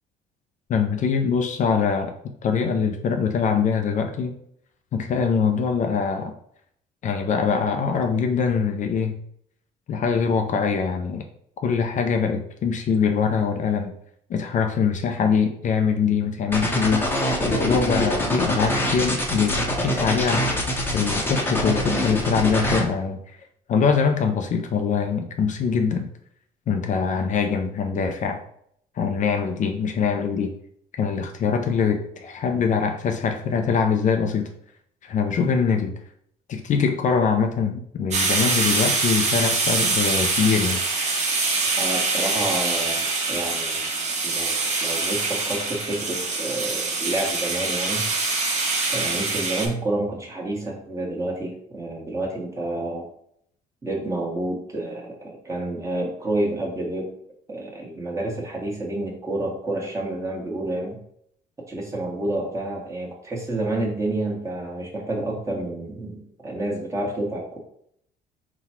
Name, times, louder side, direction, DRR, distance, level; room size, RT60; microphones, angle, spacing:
voice 1, 0.7-2.1 2.4-4.4 4.9-6.3 7.0-9.2 9.9-11.2 11.6-13.9 14.3-17.0 17.5-19.6 19.8-20.5 20.9-23.2 23.7-26.1 26.7-28.4 29.0-30.5 31.0-34.5 35.0-35.9 36.5-40.8, left 6 dB, 45° left, 5 dB, 0.5 m, -23 dB
sound 1, 16.5-22.8, left 1 dB, 15° left, 0.8 m, -24 dB
sound 2, 38.1-49.7, right 3 dB, 40° right, 1.0 m, -24 dB
voice 2, 41.8-43.9 44.2-48.0 48.9-53.1 53.8-57.1 57.5-61.0 61.7-67.6, right 2 dB, 15° right, -2 dB, 1.2 m, -29 dB
3.9 x 2.3 x 4.3 m, 0.69 s
cardioid pair, 110°, 17 cm